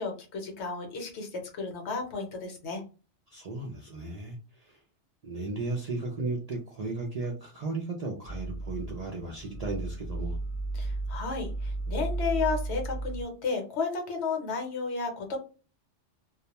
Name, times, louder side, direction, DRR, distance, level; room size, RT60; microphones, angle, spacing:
voice 1, 0.0-2.8 10.7-15.4, left 4 dB, 65° left, 3 dB, 0.9 m, -33 dB
voice 2, 3.3-4.8 5.2-10.4, right 3 dB, 55° right, -2 dB, 0.4 m, -35 dB
sound 1, 8.3-13.2, right 2 dB, 40° left, 0.8 m, -34 dB
2.3 x 2.1 x 2.8 m, 0.35 s
omnidirectional pair, 1.3 m